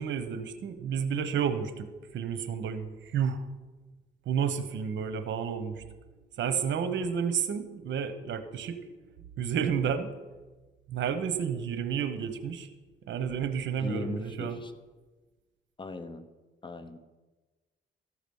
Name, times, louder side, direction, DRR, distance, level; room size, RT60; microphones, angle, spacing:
voice 1, 0.0-3.4 4.3-5.8 6.4-9.0 9.4-10.1 10.9-12.7 13.1-14.6, right 7 dB, 70° right, 10 dB, 1.0 m, -31 dB
voice 2, 13.8-14.7 15.8-16.3 16.6-17.0, left 3 dB, 25° left, 10 dB, 0.8 m, -38 dB
14.0 x 5.0 x 7.0 m, 1.2 s
cardioid pair, 90°, 20 cm